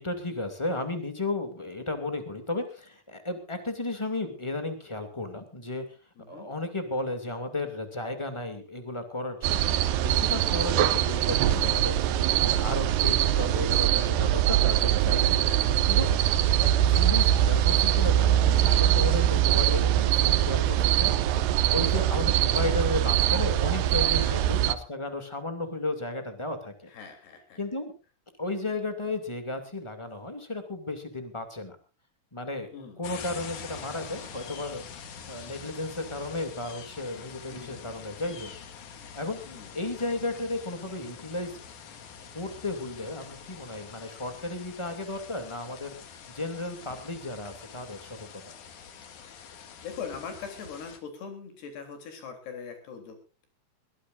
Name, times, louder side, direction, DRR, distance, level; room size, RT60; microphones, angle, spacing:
voice 1, 0.0-5.8 6.3-16.1 16.6-26.9 27.6-27.9 28.4-31.7 32.3-34.8 35.3-38.5 39.1-39.4 39.7-41.6 42.3-45.9 46.3-48.5, left 2 dB, 10° left, 7 dB, 1.5 m, -34 dB
voice 2, 6.2-6.5 10.7-10.8 15.4-15.7 16.0-16.3 24.1-24.4 26.9-27.6 32.7-33.0 37.5-38.0 39.5-39.7 49.3-53.5, left 6 dB, 75° left, 6 dB, 5.5 m, -42 dB
sound 1, 9.4-24.7, right 12 dB, 85° right, 3.0 m, -23 dB
sound 2, 33.0-51.0, left 7 dB, 55° left, 2.8 m, -45 dB
22.0 x 17.0 x 2.6 m, 0.33 s
omnidirectional pair, 4.7 m